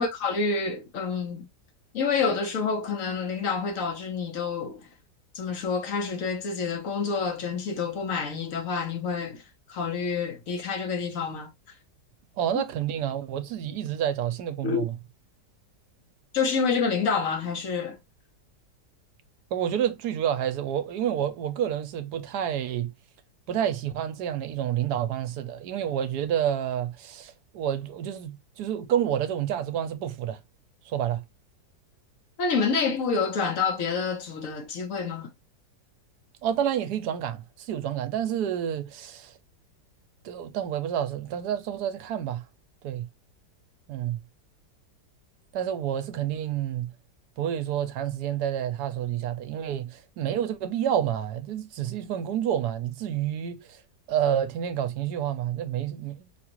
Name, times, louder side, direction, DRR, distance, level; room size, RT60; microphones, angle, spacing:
voice 1, 0.0-1.5 1.9-4.8 5.3-9.4 9.7-11.5 12.5-12.6 14.6-14.9 16.3-18.0 32.4-35.3, left 5 dB, 55° left, 1.2 m, -28 dB
voice 2, 12.4-14.9 19.5-22.9 23.5-30.4 30.9-31.2 36.4-39.3 40.2-42.4 42.8-43.1 43.9-44.2 45.5-46.9 47.4-53.8 54.1-56.2, right 10 dB, 75° right, 1.1 m, -29 dB
5.1 x 2.4 x 2.9 m
omnidirectional pair, 1.9 m